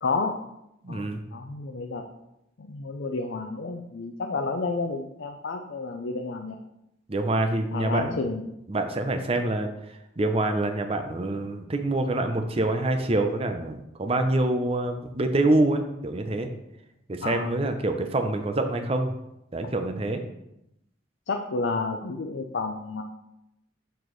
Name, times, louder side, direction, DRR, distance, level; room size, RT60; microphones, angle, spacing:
voice 1, 0.0-0.4 0.9-2.0 2.6-6.6 7.7-8.4 17.2-17.5 21.3-23.0, left 3 dB, 65° left, 3 dB, 0.5 m, -30 dB
voice 2, 0.8-1.2 7.1-8.2 8.7-9.7 10.2-16.5 17.1-19.1 19.5-20.2, right 2 dB, 30° right, 6 dB, 0.6 m, -26 dB
6.9 x 6.0 x 3.1 m, 0.85 s
head